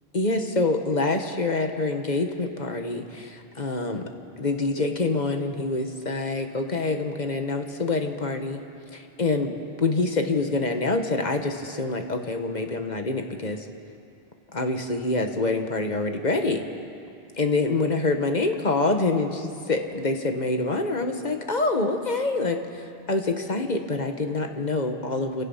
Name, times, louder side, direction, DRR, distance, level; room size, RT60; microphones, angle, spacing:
voice 1, 0.1-4.1 4.4-8.6 8.9-9.5 9.8-13.6 14.5-16.6 17.4-25.5, left 3 dB, 45° left, 5 dB, 1.4 m, -26 dB
28.5 x 17.0 x 5.6 m, 2.5 s
omnidirectional pair, 1.1 m